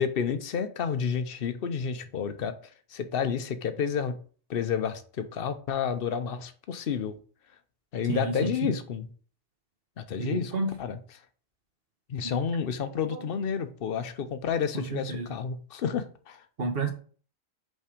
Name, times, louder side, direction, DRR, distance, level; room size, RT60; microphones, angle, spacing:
voice 1, 0.0-2.5 2.9-4.2 4.5-7.2 7.9-9.1 10.0-11.0 12.1-16.4, left 7 dB, 55° left, 10 dB, 0.7 m, -30 dB
voice 2, 8.1-8.7 10.2-10.7 12.2-12.4 13.1-13.2 14.7-15.4 16.6-16.9, right 3 dB, 50° right, 5 dB, 1.2 m, -31 dB
5.5 x 3.4 x 5.0 m, 0.41 s
omnidirectional pair, 1.4 m